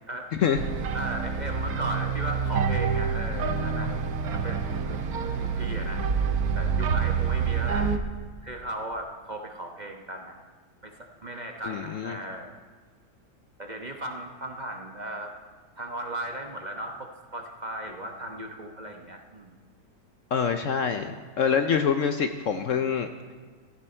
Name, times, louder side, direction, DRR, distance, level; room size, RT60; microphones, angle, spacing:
sound 1, 0.5-8.0, right 6 dB, 65° right, 1.4 m, -27 dB
voice 1, 0.9-3.9 4.3-5.0 5.4-6.1 6.5-7.9 8.4-10.3 10.8-12.6 13.6-15.3 15.8-19.5, right 1 dB, 30° right, 3 dB, 1.0 m, -36 dB
voice 2, 11.6-12.1 20.3-23.1, left 7 dB, 60° left, 7 dB, 0.9 m, -25 dB
17.0 x 14.5 x 4.4 m, 1.5 s
omnidirectional pair, 1.8 m